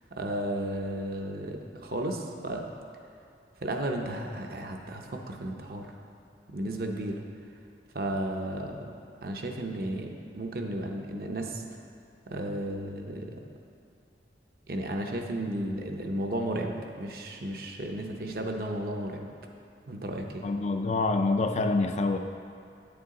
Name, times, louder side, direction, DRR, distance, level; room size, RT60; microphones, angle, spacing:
voice 1, 0.1-2.7 3.6-5.9 6.5-7.2 7.9-8.8 9.2-11.6 12.3-13.3 14.7-19.3 19.9-20.4, right 1 dB, 55° right, 2 dB, 0.7 m, -33 dB
voice 2, 20.4-22.2, left 3 dB, 40° left, 6 dB, 0.3 m, -26 dB
8.7 x 7.0 x 3.7 m, 2.4 s
head